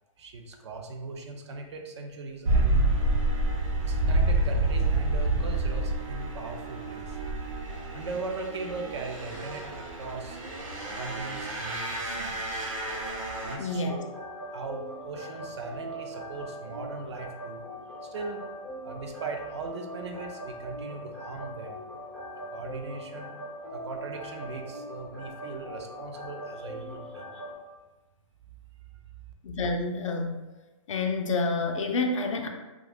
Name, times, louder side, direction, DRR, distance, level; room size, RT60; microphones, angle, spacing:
voice 1, 0.2-2.8 3.7-7.2 7.9-10.4 10.9-12.3 13.4-14.1 14.5-17.6 18.0-18.4 18.8-21.8 22.3-23.3 23.7-27.4, right 3 dB, 55° right, 3 dB, 0.4 m, -39 dB
sound 1, 2.4-13.5, right 2 dB, 70° right, 0.8 m, -28 dB
voice 2, 13.6-14.0 29.4-30.4 30.9-32.5, left 3 dB, 65° left, 4 dB, 0.5 m, -28 dB
sound 2, 13.7-27.5, equal, 10° left, 0.4 m, -41 dB
2.4 x 2.3 x 3.4 m, 1.2 s
hypercardioid pair, 160°, 18 cm